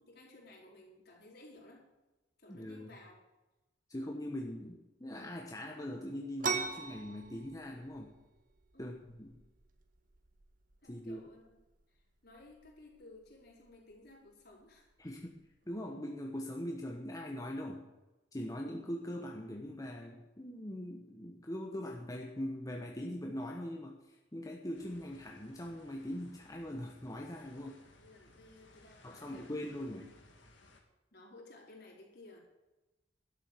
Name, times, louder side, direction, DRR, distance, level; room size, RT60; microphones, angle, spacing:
voice 1, 0.0-1.8 2.4-3.2 8.7-9.0 10.8-11.4 11.9-14.9 27.5-30.1 31.1-32.4, left 2 dB, 55° left, -2 dB, 4.4 m, -57 dB
voice 2, 2.5-2.9 3.9-8.2 8.8-9.4 10.9-11.2 15.0-15.3 15.7-17.9 18.3-27.7 29.0-30.1, left 1 dB, 20° left, 1 dB, 1.1 m, -41 dB
sound 1, 6.4-15.8, right 5 dB, 45° right, 1.3 m, -44 dB
sound 2, 24.7-30.8, left 2 dB, 80° left, 2.4 m, -62 dB
12.0 x 7.5 x 8.3 m, 1.0 s
head